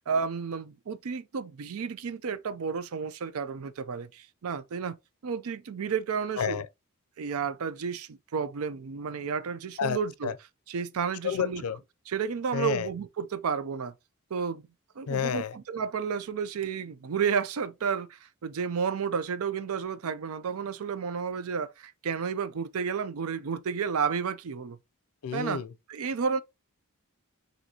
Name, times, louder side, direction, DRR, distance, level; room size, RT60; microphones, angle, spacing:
voice 1, 0.1-5.0 5.2-6.6 7.2-10.3 10.7-11.6 12.1-13.9 14.3-14.6 15.0-24.8 25.3-25.6 25.9-26.4, right 6 dB, 75° right, 0.5 m, -31 dB
voice 2, 11.2-11.8 12.5-12.9 15.1-15.5 25.2-25.7, left 7 dB, 85° left, 0.5 m, -29 dB
6.3 x 2.6 x 2.8 m
head